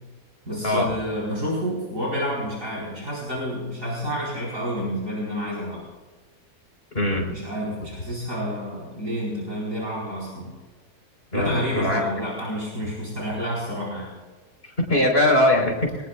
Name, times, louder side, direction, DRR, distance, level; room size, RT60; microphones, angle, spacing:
voice 1, 0.5-5.8 7.3-10.5 11.3-14.1, equal, 60° right, -5 dB, 4.7 m, -29 dB
voice 2, 6.9-7.3 11.3-12.1 14.9-15.9, left 1 dB, 40° left, 0 dB, 4.4 m, -21 dB
23.5 x 19.5 x 2.4 m, 1.3 s
omnidirectional pair, 1.6 m